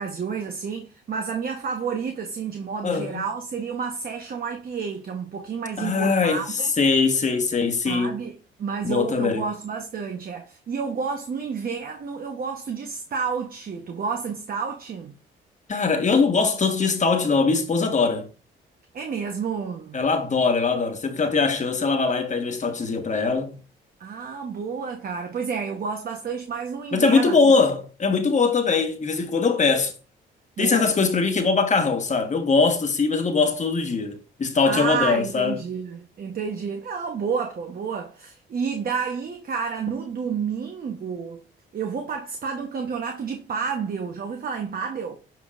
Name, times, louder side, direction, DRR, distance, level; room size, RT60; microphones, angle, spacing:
voice 1, 0.0-6.7 7.8-15.1 18.9-20.0 24.0-27.5 30.6-30.9 34.7-41.4 41.7-45.2, right 6 dB, 50° right, 1.0 m, -30 dB
voice 2, 2.8-3.2 5.8-8.1 8.8-9.4 15.7-18.3 19.9-23.6 26.9-29.9 30.6-35.6, left 4 dB, 35° left, 1.3 m, -22 dB
7.6 x 5.3 x 2.4 m
cardioid pair, 90°, 20 cm